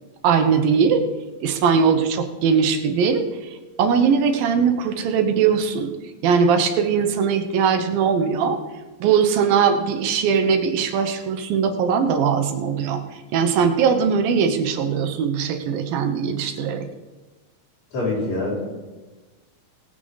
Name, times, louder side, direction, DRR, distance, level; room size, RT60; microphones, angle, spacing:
voice 1, 0.2-1.0 1.4-5.9 6.2-8.6 9.0-13.0 13.3-16.9, right 6 dB, 75° right, 7 dB, 2.7 m, -20 dB
voice 2, 17.9-18.6, left 2 dB, 65° left, -6 dB, 7.1 m, -24 dB
19.0 x 9.6 x 4.0 m, 1.2 s
omnidirectional pair, 4.4 m